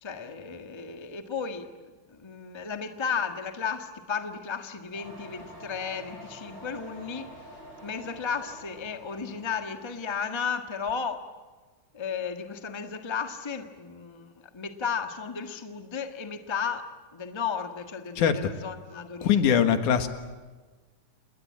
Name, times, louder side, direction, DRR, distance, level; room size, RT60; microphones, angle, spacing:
voice 1, 0.0-1.7 2.1-7.3 7.8-11.3 11.9-19.8, left 6 dB, 45° left, 6 dB, 0.3 m, -34 dB
sound 1, 4.9-10.2, equal, 35° right, 8.7 m, -47 dB
voice 2, 19.2-20.1, left 8 dB, 75° left, 8 dB, 3.0 m, -22 dB
29.0 x 20.5 x 8.6 m, 1.3 s
omnidirectional pair, 3.6 m